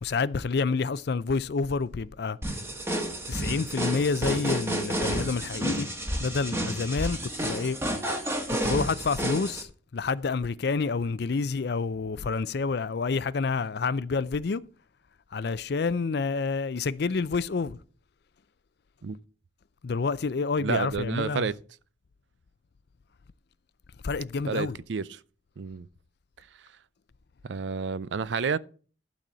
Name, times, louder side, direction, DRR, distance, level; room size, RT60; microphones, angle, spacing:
voice 1, 0.0-2.4 3.3-5.9 6.2-7.8 8.5-14.6 15.3-17.8 19.8-21.5 24.0-24.8, left 4 dB, 60° left, 0.5 m, -28 dB
sound 1, 2.4-9.6, right 1 dB, 15° right, 1.4 m, -30 dB
voice 2, 20.6-21.6 24.5-25.2 25.6-25.9 27.4-28.6, right 5 dB, 80° right, 0.5 m, -30 dB
12.0 x 4.2 x 7.4 m
head